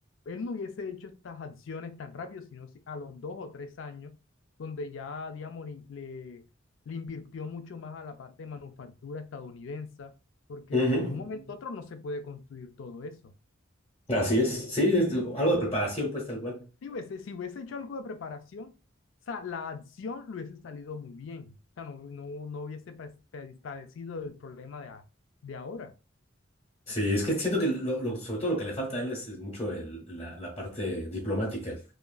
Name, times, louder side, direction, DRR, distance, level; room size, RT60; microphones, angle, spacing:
voice 1, 0.3-4.2 4.6-6.4 6.9-10.1 10.5-13.3 16.8-18.7 19.3-25.0 25.4-25.9, left 4 dB, 70° left, 0.4 m, -40 dB
voice 2, 10.7-11.2 14.1-16.7 26.9-31.8, equal, 25° left, 0.8 m, -28 dB
2.8 x 2.4 x 2.3 m
head